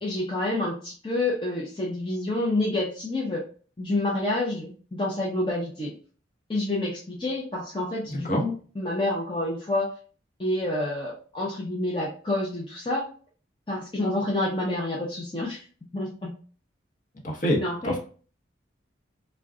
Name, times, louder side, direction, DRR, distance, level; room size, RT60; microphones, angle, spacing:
voice 1, 0.0-3.4 3.8-5.9 6.5-9.9 10.4-13.0 13.7-15.6 15.9-16.3 17.6-18.0, left 2 dB, 25° left, -3 dB, 0.6 m, -28 dB
voice 2, 8.1-8.4 17.2-18.0, equal, 40° left, 1 dB, 0.9 m, -26 dB
3.7 x 2.2 x 3.5 m, 0.40 s
head